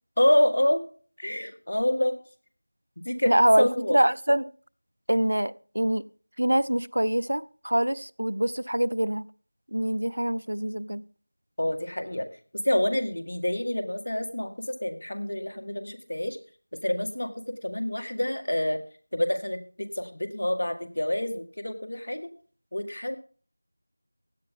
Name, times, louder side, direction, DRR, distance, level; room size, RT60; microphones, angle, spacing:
voice 1, 0.2-0.8 1.2-2.2 3.0-4.0 11.6-12.3 12.6-16.4 16.8-18.8 19.1-22.3 22.7-23.2, left 1 dB, 55° left, 1.9 m, -27 dB
voice 2, 3.3-4.5 5.1-6.0 6.4-9.2 9.7-11.0, right 1 dB, 75° right, 0.6 m, -24 dB
16.5 x 9.8 x 3.8 m
figure-of-eight pair, 175°, 0 cm